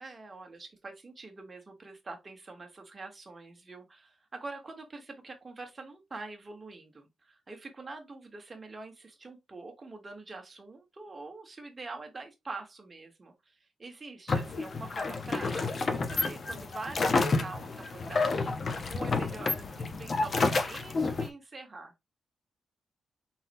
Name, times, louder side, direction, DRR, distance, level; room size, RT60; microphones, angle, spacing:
voice 1, 0.0-21.9, right 3 dB, 25° right, 1.3 m, -45 dB
rowing boat on sea - actions, 14.3-21.3, left 3 dB, 40° left, 0.7 m, -30 dB
4.1 x 3.9 x 2.6 m
wide cardioid pair, 125°, 0 cm